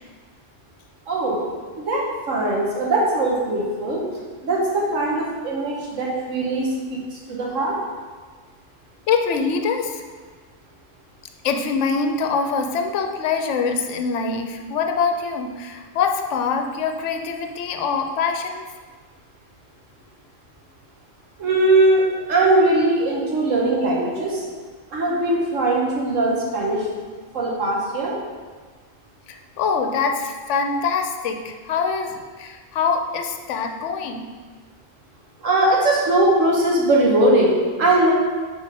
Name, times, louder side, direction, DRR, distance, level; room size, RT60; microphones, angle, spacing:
voice 1, 1.1-1.4 1.8-4.0 4.4-7.8 21.4-24.4 24.9-26.9 27.3-28.1 35.4-38.1, right 2 dB, 70° right, -3 dB, 1.5 m, -20 dB
voice 2, 9.1-10.0 11.4-18.6 29.3-34.3, left 5 dB, 70° left, 5 dB, 0.9 m, -24 dB
5.0 x 4.4 x 5.1 m, 1.5 s
omnidirectional pair, 1.4 m